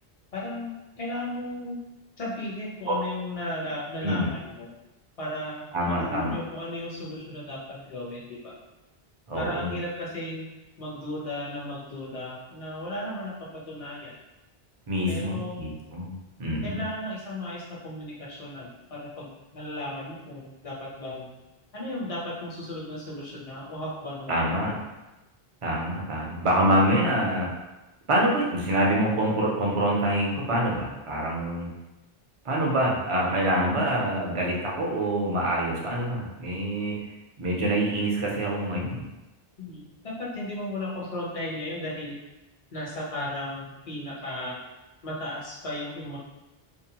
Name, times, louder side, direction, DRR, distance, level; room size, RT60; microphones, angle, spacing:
voice 1, 0.3-1.8 2.2-4.7 5.2-8.5 9.4-10.5 10.8-14.2 15.1-15.6 16.6-21.3 21.7-24.4 39.6-39.9 40.2-42.2 42.7-44.6 45.0-46.2, left 1 dB, 40° left, -5 dB, 0.7 m, -35 dB
voice 2, 5.7-6.4 9.3-9.7 14.9-16.1 16.4-16.8 24.3-24.7 25.6-27.5 28.1-31.7 32.4-37.0 37.4-39.0, right 1 dB, 45° right, -3 dB, 0.5 m, -25 dB
2.6 x 2.0 x 2.8 m, 1.0 s
omnidirectional pair, 1.0 m